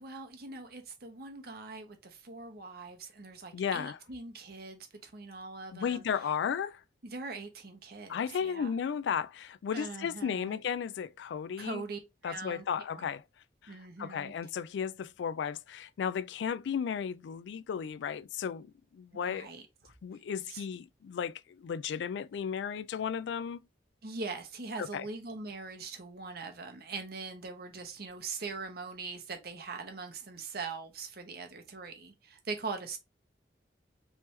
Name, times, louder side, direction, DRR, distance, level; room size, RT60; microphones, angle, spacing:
voice 1, 0.0-6.0 7.0-8.7 9.7-10.6 11.6-13.1 13.7-14.3 19.2-19.6 20.5-20.6 24.0-33.0, right 4 dB, 60° right, 1.0 m, -42 dB
voice 2, 3.5-4.0 5.7-6.8 8.1-11.8 12.2-13.2 13.6-18.7 18.9-19.5 20.0-23.6 24.8-25.1, left 7 dB, 80° left, 0.3 m, -34 dB
3.4 x 3.3 x 2.9 m
head